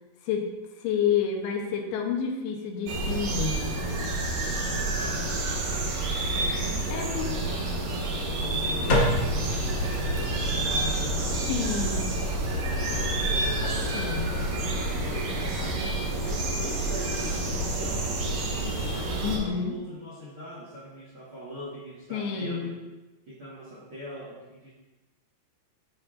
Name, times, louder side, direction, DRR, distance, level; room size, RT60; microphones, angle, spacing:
voice 1, 0.2-3.7 6.9-7.3 11.5-12.1 13.9-14.3 19.2-19.8 22.1-22.8, left 7 dB, 80° left, 2 dB, 2.8 m, -29 dB
sound 1, 2.9-19.4, right 2 dB, 85° right, 1.5 m, -29 dB
voice 2, 4.9-5.2 6.2-7.9 8.2-12.0 12.7-18.1 18.7-22.7 23.3-24.7, equal, 55° right, -6 dB, 1.4 m, -42 dB
sound 2, 8.9-15.1, left 1 dB, 55° left, 1.7 m, -31 dB
13.0 x 4.9 x 2.5 m, 1.1 s
omnidirectional pair, 4.7 m